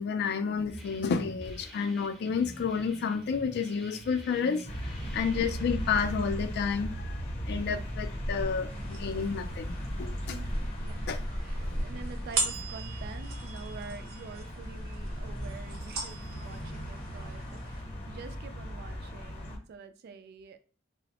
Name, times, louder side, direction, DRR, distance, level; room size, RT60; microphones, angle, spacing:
voice 1, 0.0-10.4 11.1-11.2 11.7-11.8, left 6 dB, 55° left, 0.3 m, -31 dB
sound 1, 0.7-5.9, right 1 dB, ahead, 0.5 m, -46 dB
sound 2, 4.7-19.6, equal, 30° left, 0.7 m, -37 dB
voice 2, 5.0-5.4 10.3-11.1 11.4-20.6, right 5 dB, 50° right, 0.3 m, -47 dB
sound 3, 8.7-17.8, right 4 dB, 80° right, 0.8 m, -40 dB
3.0 x 2.0 x 2.8 m
head